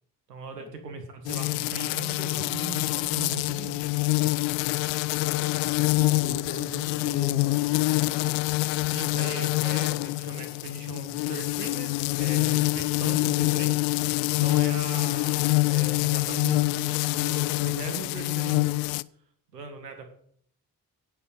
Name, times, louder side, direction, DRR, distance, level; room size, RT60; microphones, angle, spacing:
voice 1, 0.3-3.8 8.9-18.8 19.5-20.1, right 4 dB, 85° right, 6 dB, 1.8 m, -39 dB
sound 1, 1.2-19.0, left 23 dB, 65° left, 0.6 m, -26 dB
voice 2, 5.2-8.5, left 3 dB, 30° left, 4 dB, 2.4 m, -39 dB
16.5 x 7.5 x 5.7 m, 0.64 s
figure-of-eight pair, 40°, 47 cm